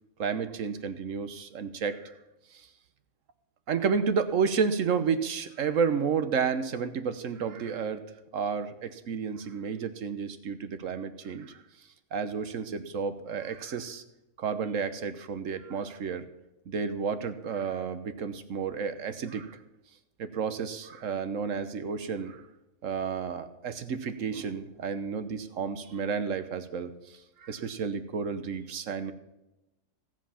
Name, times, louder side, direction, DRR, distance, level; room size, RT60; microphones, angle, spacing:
voice 1, 0.2-2.0 2.5-2.7 3.7-8.1 8.3-11.6 12.1-14.0 14.4-16.2 16.7-19.6 20.2-22.4 22.8-29.1, right 6 dB, 60° right, 11 dB, 1.3 m, -31 dB
16.5 x 7.6 x 5.7 m, 0.96 s
omnidirectional pair, 1.6 m